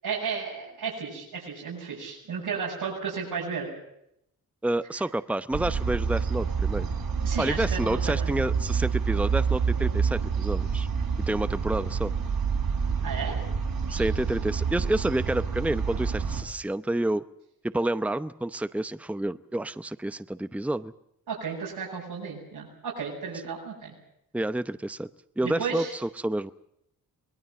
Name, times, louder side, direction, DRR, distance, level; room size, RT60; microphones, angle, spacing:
voice 1, 0.0-3.7 7.2-8.3 13.0-13.4 21.3-23.9 25.4-25.9, right 5 dB, 85° right, -5 dB, 7.0 m, -33 dB
voice 2, 4.6-6.9 7.4-10.9 11.3-12.1 13.9-17.2 17.6-20.9 24.3-25.1 25.4-26.5, right 1 dB, 5° right, 12 dB, 0.8 m, -29 dB
sound 1, 5.5-16.4, right 6 dB, 70° right, 4.9 m, -28 dB
24.0 x 19.5 x 7.7 m, 0.77 s
cardioid pair, 65°, 36 cm